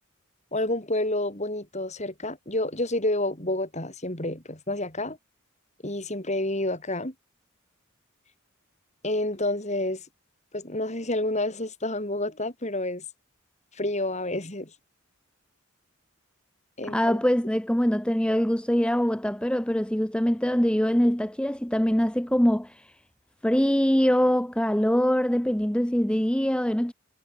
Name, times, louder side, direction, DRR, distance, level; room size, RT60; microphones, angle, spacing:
voice 1, 0.5-5.2 5.8-7.1 9.0-10.0 10.5-13.0 13.7-14.7 16.8-17.2, left 1 dB, 30° left, 5.0 m, -29 dB
voice 2, 16.9-22.9 23.4-26.9, equal, 5° left, 0.9 m, -23 dB
head